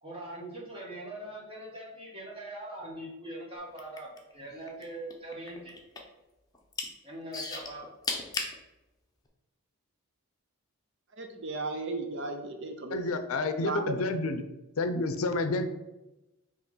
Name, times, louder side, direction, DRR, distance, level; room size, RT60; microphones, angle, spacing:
voice 1, 0.0-5.7 7.0-7.9, right 1 dB, 25° right, -3 dB, 1.6 m, -42 dB
sound 1, 3.7-4.8 5.1-6.2 6.5-6.9 7.3-8.5 9.3-9.4, left 4 dB, 15° left, 0.7 m, -35 dB
voice 2, 11.1-13.1 13.6-14.0, right 3 dB, 55° right, 5 dB, 0.6 m, -35 dB
voice 3, 12.9-14.4 14.8-15.7, left 3 dB, 70° left, 8 dB, 0.5 m, -29 dB
5.8 x 3.1 x 5.5 m, 1.0 s
head